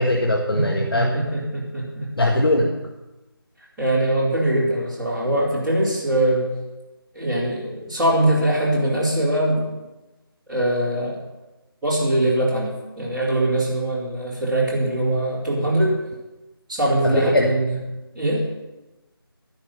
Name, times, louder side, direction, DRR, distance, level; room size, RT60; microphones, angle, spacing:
voice 1, 0.0-1.1 2.2-2.7 17.0-17.5, left 1 dB, 65° left, 0 dB, 1.7 m, -20 dB
voice 2, 0.5-2.1 2.6-2.7 3.8-6.5 7.1-9.7 10.5-11.2 11.8-16.0 16.7-17.8 18.1-18.4, right 1 dB, ahead, -13 dB, 2.3 m, -22 dB
12.0 x 10.5 x 5.5 m, 1.1 s
figure-of-eight pair, 170°, 13 cm